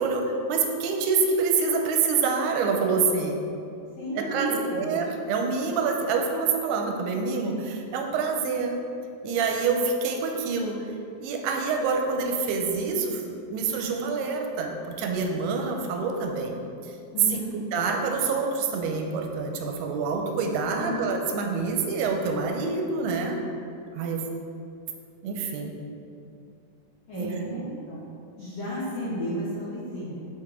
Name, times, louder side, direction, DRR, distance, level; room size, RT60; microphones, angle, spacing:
voice 1, 0.0-3.4 4.2-8.7 9.2-10.8 11.2-16.6 17.7-23.4 23.9-24.2 25.2-25.7 27.1-27.6, right 4 dB, 85° right, 3 dB, 2.6 m, -26 dB
voice 2, 4.0-4.9 17.1-17.5 20.8-21.1 27.1-28.0 28.4-30.3, equal, 70° left, -11 dB, 1.5 m, -33 dB
6.6 x 5.3 x 3.6 m, 2.5 s
omnidirectional pair, 4.6 m